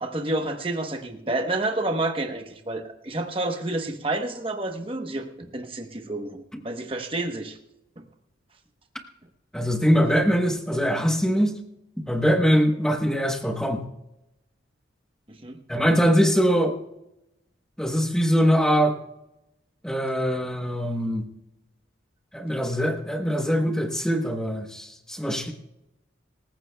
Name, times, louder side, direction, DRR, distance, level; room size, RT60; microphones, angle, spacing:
voice 1, 0.0-7.6 8.0-8.1 15.3-15.6, right 2 dB, 25° right, 5 dB, 1.0 m, -29 dB
voice 2, 9.5-11.6 12.0-13.8 15.7-16.7 17.8-19.0 19.8-21.3 22.3-25.5, equal, 5° left, 4 dB, 1.1 m, -22 dB
25.0 x 15.0 x 2.3 m, 0.91 s
head